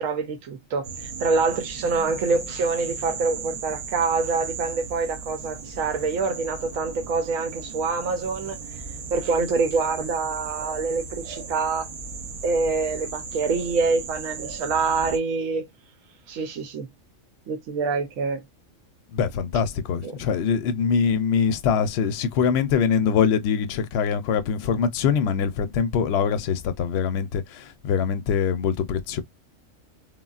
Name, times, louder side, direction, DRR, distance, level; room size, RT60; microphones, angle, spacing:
voice 1, 0.0-8.6 9.1-11.9 12.4-15.7 16.3-16.9 17.5-18.4 20.0-20.1, right 4 dB, 90° right, 1.0 m, -26 dB
sound 1, 0.8-15.2, right 5 dB, 70° right, 0.3 m, -36 dB
voice 2, 19.1-29.2, left 6 dB, 65° left, 0.7 m, -23 dB
3.3 x 2.2 x 2.3 m
omnidirectional pair, 1.4 m